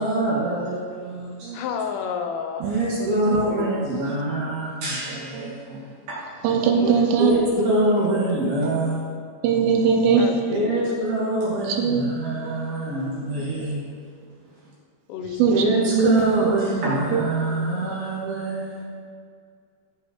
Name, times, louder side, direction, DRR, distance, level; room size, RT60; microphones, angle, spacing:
voice 1, 0.0-1.5 2.6-6.2 7.2-9.0 10.5-13.9 15.5-18.9, right 1 dB, 65° right, -6 dB, 2.7 m, -25 dB
voice 2, 1.5-3.8 6.8-8.1 10.2-10.9 15.1-15.8, left 7 dB, 85° left, 5 dB, 3.2 m, -33 dB
voice 3, 5.1-5.5 6.4-7.3 9.4-10.3 11.5-12.1 12.4-12.6 13.3-13.7 15.4-15.6 15.9-16.1 16.4-16.5 17.1-17.2, right 6 dB, 80° right, 3 dB, 3.1 m, -21 dB
12.5 x 7.8 x 2.9 m, 2.1 s
omnidirectional pair, 5.9 m